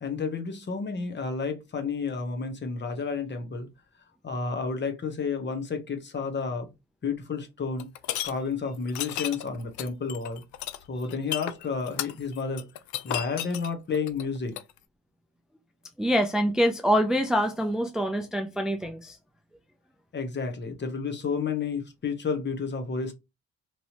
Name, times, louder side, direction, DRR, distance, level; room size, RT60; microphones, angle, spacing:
voice 1, 0.0-3.7 4.2-6.7 7.0-7.9 8.2-10.4 10.9-12.7 13.0-14.6 20.1-23.1, left 5 dB, 35° left, 1.0 m, -31 dB
sound 1, 7.8-8.3 8.9-14.7, left 13 dB, 70° left, 0.5 m, -33 dB
voice 2, 16.0-19.2, equal, ahead, 0.4 m, -25 dB
3.1 x 2.7 x 2.8 m
cardioid pair, 90°, 30 cm